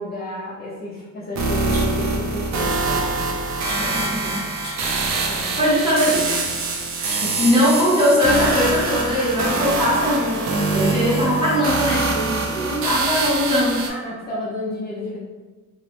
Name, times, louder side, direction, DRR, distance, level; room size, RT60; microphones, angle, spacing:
voice 1, 0.0-3.1 3.8-4.4 5.3-5.6 6.0-6.1 7.2-7.4 13.8-15.2, left 1 dB, 30° left, -7 dB, 0.4 m, -32 dB
sound 1, 1.4-13.9, right 3 dB, 60° right, 0.5 m, -24 dB
Rattle, 1.7-2.2 2.7-3.0 3.6-4.0 4.6-5.2 5.8-6.2 7.0-7.5 8.3-8.8, equal, 55° left, 1.0 m, -39 dB
voice 2, 3.7-4.4 5.6-6.4 7.0-13.8, equal, 15° right, -8 dB, 0.9 m, -21 dB
3.0 x 2.0 x 3.0 m, 1.3 s
wide cardioid pair, 175°, 32 cm